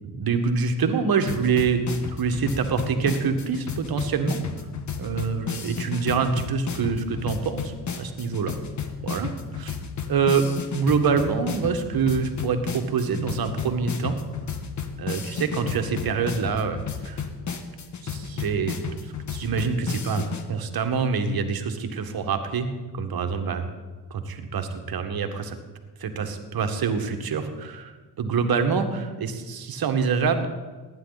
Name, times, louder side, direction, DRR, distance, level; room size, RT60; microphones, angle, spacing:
voice 1, 0.2-4.4 5.0-8.6 9.0-9.8 10.1-10.5 10.7-14.2 15.0-17.3 18.0-20.2 20.5-23.7 24.1-25.6 26.0-30.5, right 5 dB, 50° right, 7 dB, 1.7 m, -26 dB
sound 1, 1.3-20.4, left 6 dB, 35° left, 1.4 m, -33 dB
18.0 x 9.8 x 4.1 m, 1.3 s
supercardioid pair, 70°, 48 cm